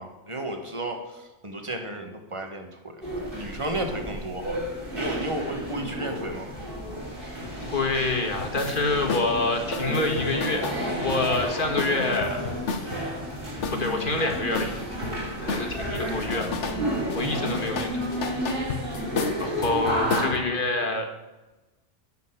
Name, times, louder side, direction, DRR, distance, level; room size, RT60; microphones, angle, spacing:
voice 1, 0.0-4.6 4.9-6.5, right 1 dB, 25° right, 4 dB, 1.5 m, -33 dB
sound 1, 3.0-20.3, equal, 50° right, 3.7 m, -31 dB
voice 2, 7.6-10.6 11.0-12.4 13.7-14.7 15.4-16.5 17.1-18.1 19.4-21.1, left 2 dB, 45° left, 3 dB, 1.8 m, -27 dB
sound 2, 8.4-8.8 9.1-9.3 9.7-13.1 13.6-15.2 15.5-16.8 17.1-20.4, left 5 dB, 80° left, 1.3 m, -32 dB
9.7 x 6.4 x 8.1 m, 1.1 s
omnidirectional pair, 1.2 m